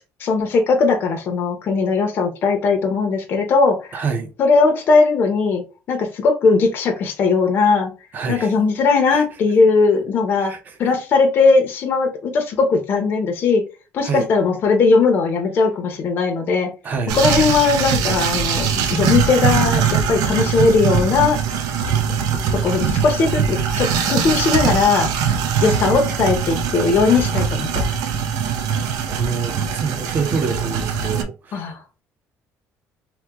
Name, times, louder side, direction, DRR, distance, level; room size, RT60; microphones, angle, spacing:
voice 1, 0.2-4.0 4.4-5.6 5.9-7.9 8.3-10.5 10.8-13.6 13.9-16.7 17.1-21.4 22.5-25.1 25.6-27.9 31.5-31.8, left 4 dB, 35° left, 0.6 m, -18 dB
voice 2, 3.9-4.3 8.1-8.5 9.1-9.2 10.4-10.8 14.0-14.3 16.8-17.2 28.7-28.8 29.1-31.7, right 5 dB, 30° right, 0.5 m, -27 dB
sound 1, 17.1-31.2, right 7 dB, 85° right, 0.5 m, -21 dB
2.9 x 2.1 x 3.3 m
cardioid pair, 180°, 6 cm